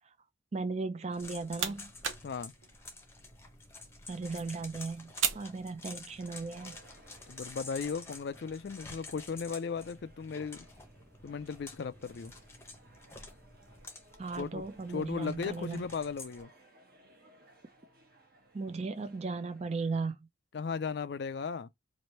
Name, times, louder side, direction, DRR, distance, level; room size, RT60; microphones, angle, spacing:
voice 1, 0.5-1.9 4.1-6.8 14.2-15.8 18.5-20.3, right 4 dB, 35° right, 0.4 m, -36 dB
sound 1, 1.1-16.4, left 3 dB, 15° left, 0.7 m, -50 dB
sound 2, 1.1-6.4, right 7 dB, 80° right, 0.8 m, -40 dB
voice 2, 2.2-2.5 7.3-10.7 11.2-12.3 14.4-14.6 14.9-16.5 20.5-21.7, left 5 dB, 55° left, 0.4 m, -36 dB
sound 3, 6.2-20.0, right 2 dB, 50° right, 1.1 m, -61 dB
3.2 x 2.6 x 4.2 m
head